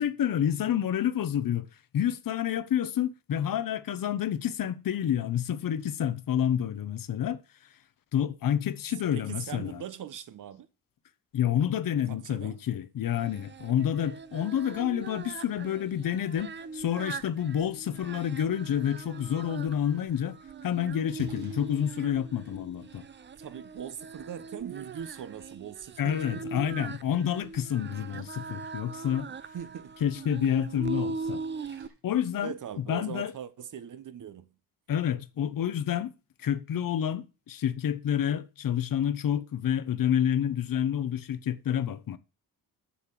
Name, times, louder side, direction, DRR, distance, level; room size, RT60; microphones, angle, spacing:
voice 1, 0.0-1.7 1.9-7.4 8.1-9.8 11.3-20.4 20.6-23.0 26.0-29.3 30.0-31.4 32.0-33.3 34.9-36.1 36.4-42.2, left 9 dB, 60° left, 1.0 m, -29 dB
voice 2, 9.1-10.7 12.1-12.6 23.4-26.9 28.4-28.5 29.5-30.0 32.4-34.5, right 9 dB, 50° right, 1.1 m, -41 dB
Singing, 13.1-31.9, right 4 dB, 30° right, 0.6 m, -41 dB
Splash splatter, 20.4-33.1, right 4 dB, 70° right, 2.5 m, -56 dB
7.2 x 6.6 x 7.6 m
cardioid pair, 120°, 38 cm